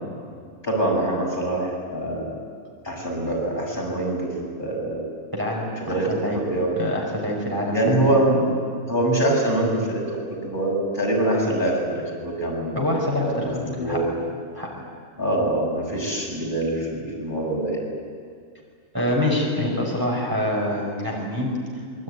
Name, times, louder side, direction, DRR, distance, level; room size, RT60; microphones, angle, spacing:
voice 1, 0.6-2.2 2.8-5.0 5.8-6.8 7.7-8.5 8.9-12.8 13.2-13.5 13.8-14.0 15.2-17.8, right 1 dB, 35° left, -2 dB, 7.0 m, -24 dB
voice 2, 5.3-6.4 6.8-8.1 12.7-14.0 14.5-14.7 18.9-21.5, left 1 dB, 15° right, -2 dB, 5.1 m, -25 dB
26.0 x 23.5 x 9.7 m, 2.1 s
omnidirectional pair, 1.5 m